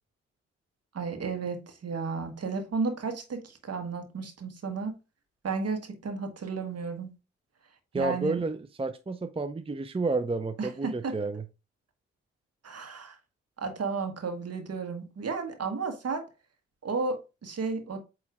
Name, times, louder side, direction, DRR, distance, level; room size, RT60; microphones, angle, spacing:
voice 1, 0.9-4.9 5.4-7.1 7.9-8.4 10.6-11.1 12.6-13.2 13.6-16.2 16.8-18.0, right 4 dB, 55° right, 1.6 m, -33 dB
voice 2, 7.9-11.4, right 3 dB, 20° right, 0.6 m, -30 dB
8.3 x 3.1 x 3.6 m
hypercardioid pair, 40°, 29 cm